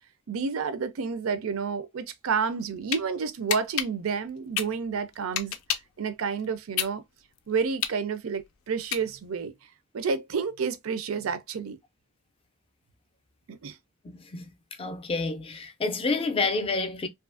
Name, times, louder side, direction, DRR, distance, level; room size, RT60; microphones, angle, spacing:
voice 1, 0.3-5.6 6.0-7.0 7.5-9.5 9.9-11.8 13.5-13.8, right 5 dB, 85° right, 0.4 m, -30 dB
sound 1, 2.5-3.0 3.5-6.0 6.4-9.4, left 9 dB, 90° left, 0.4 m, -31 dB
voice 2, 14.0-14.5 14.8-17.1, left 3 dB, 25° left, 0.4 m, -29 dB
2.6 x 2.4 x 2.4 m
head